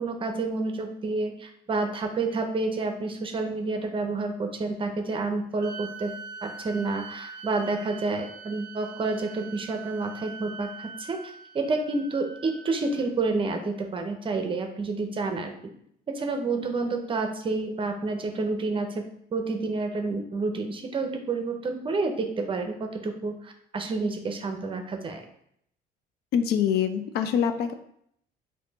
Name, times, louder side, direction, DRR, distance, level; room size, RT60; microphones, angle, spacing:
voice 1, 0.0-6.1 6.4-15.5 16.1-25.2, right 3 dB, 30° right, 5 dB, 0.7 m, -29 dB
sound 1, 5.6-13.1, right 5 dB, 80° right, 0.5 m, -43 dB
voice 2, 26.3-27.7, left 8 dB, 75° left, 9 dB, 0.4 m, -24 dB
4.3 x 2.7 x 4.0 m, 0.70 s
cardioid pair, 110°, 17 cm